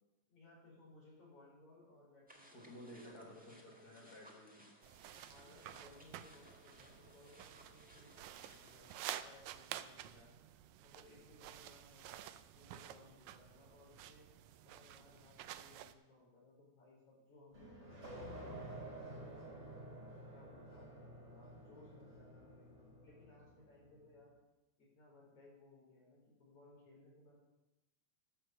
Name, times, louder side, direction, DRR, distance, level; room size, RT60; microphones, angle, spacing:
voice 1, 0.3-3.8 5.3-10.4 10.8-14.3 14.6-19.6 20.3-24.4 24.8-27.4, left 2 dB, 75° left, -5 dB, 6.0 m, -63 dB
sound 1, 2.3-9.0, right 1 dB, 10° right, 0.4 m, -63 dB
voice 2, 2.5-4.7, left 1 dB, 45° left, -1 dB, 1.5 m, -54 dB
sound 2, 4.8-15.9, right 12 dB, 80° right, 1.9 m, -51 dB
sound 3, 17.5-23.9, right 1 dB, 35° right, 5.7 m, -51 dB
13.0 x 6.1 x 6.9 m, 1.0 s
omnidirectional pair, 3.3 m